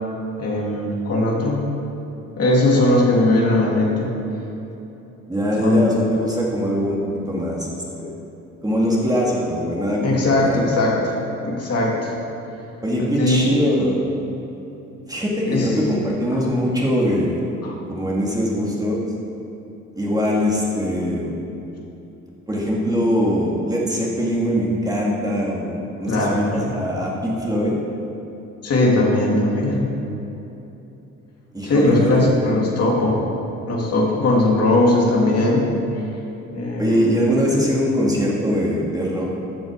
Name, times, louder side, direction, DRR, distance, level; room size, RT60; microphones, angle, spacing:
voice 1, 0.4-1.6 2.4-4.1 5.6-5.8 10.0-11.1 11.4-12.1 13.0-13.5 15.5-15.7 16.5-16.6 17.6-17.7 26.1-26.8 28.6-29.9 31.6-33.2 33.7-35.7 36.5-37.1, left 2 dB, 55° left, -3 dB, 2.7 m, -19 dB
voice 2, 5.3-7.0 7.3-8.1 8.6-10.6 12.8-14.0 15.1-17.6 17.9-19.0 20.0-21.4 22.5-27.8 31.5-32.2 36.8-39.4, equal, 10° right, -4 dB, 2.2 m, -22 dB
14.5 x 6.5 x 5.1 m, 2.9 s
cardioid pair, 90°, 30 cm